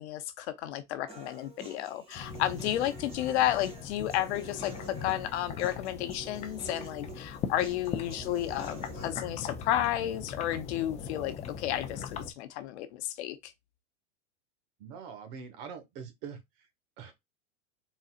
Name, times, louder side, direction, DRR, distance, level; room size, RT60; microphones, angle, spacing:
voice 1, 0.0-4.7 5.0-13.5, left 13 dB, 60° left, 0.8 m, -32 dB
Human voice, 1.1-9.1, right 4 dB, 15° right, 1.9 m, -48 dB
sound 1, 2.2-12.3, left 6 dB, 20° left, 0.5 m, -41 dB
voice 2, 14.8-16.7 17.0-17.1, right 6 dB, 45° right, 1.3 m, -44 dB
4.1 x 3.8 x 2.4 m
supercardioid pair, 135°, 37 cm